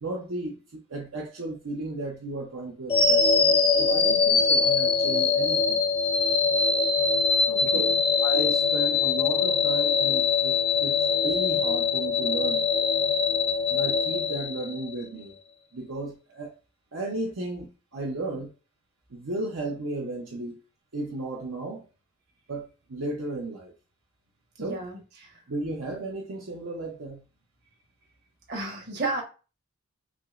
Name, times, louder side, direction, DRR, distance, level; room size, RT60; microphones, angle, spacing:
voice 1, 0.0-5.9 7.6-7.9 8.2-11.0 11.2-12.6 13.7-15.3 15.7-16.6 16.9-18.5 19.1-20.6 20.9-21.8 22.5-23.7 24.6-24.8 25.5-27.2, right 2 dB, 70° right, 0.7 m, -34 dB
sound 1, 2.9-15.0, left 5 dB, 25° left, 0.5 m, -23 dB
voice 2, 7.5-7.9 24.6-25.0 28.5-29.2, right 2 dB, 50° right, 1.2 m, -32 dB
5.8 x 2.0 x 2.4 m
head